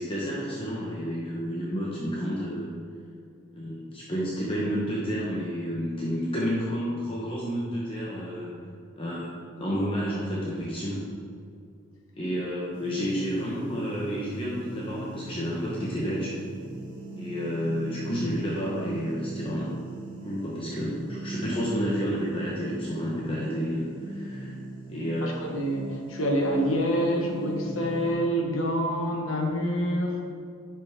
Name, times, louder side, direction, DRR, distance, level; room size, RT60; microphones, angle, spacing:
voice 1, 0.0-2.7 3.5-8.6 9.0-9.3 9.6-11.0 12.2-16.4 17.2-19.7 20.2-24.6 24.9-25.3, equal, 25° left, -6 dB, 1.1 m, -30 dB
sound 1, 12.7-28.1, right 2 dB, 20° right, 1.8 m, -39 dB
voice 2, 25.2-30.3, equal, 80° left, 1 dB, 1.4 m, -27 dB
10.5 x 6.1 x 3.6 m, 2.3 s
head